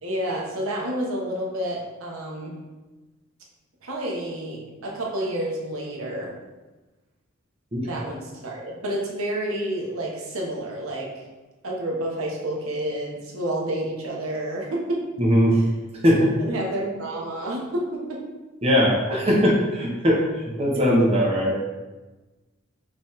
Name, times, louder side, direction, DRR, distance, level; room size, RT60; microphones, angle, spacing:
voice 1, 0.0-2.5 3.8-6.3 7.8-11.1 11.6-15.0 15.5-15.6 16.4-18.2, right 1 dB, 85° right, -3 dB, 1.0 m, -29 dB
voice 2, 15.2-15.5 16.0-16.3 18.6-20.2 20.6-21.6, equal, 30° right, -3 dB, 0.8 m, -19 dB
5.6 x 3.0 x 3.1 m, 1.2 s
head